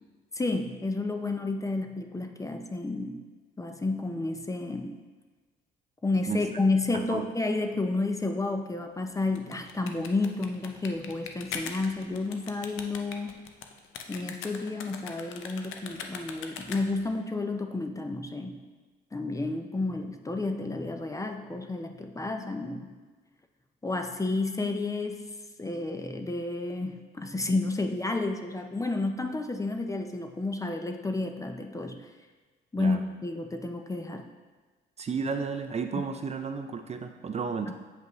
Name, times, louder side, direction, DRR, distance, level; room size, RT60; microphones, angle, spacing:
voice 1, 0.4-3.2 3.6-4.9 6.0-13.4 14.1-18.6 19.1-22.9 23.8-25.2 25.6-32.1 32.7-34.3 37.7-37.8, left 2 dB, 15° left, 5 dB, 0.5 m, -31 dB
voice 2, 6.9-7.3 32.8-33.0 35.0-37.7, right 5 dB, 35° right, 6 dB, 0.4 m, -32 dB
sound 1, 9.2-17.1, left 6 dB, 90° left, 0.6 m, -41 dB
8.0 x 5.2 x 3.0 m, 1.3 s
cardioid pair, 90°, 20 cm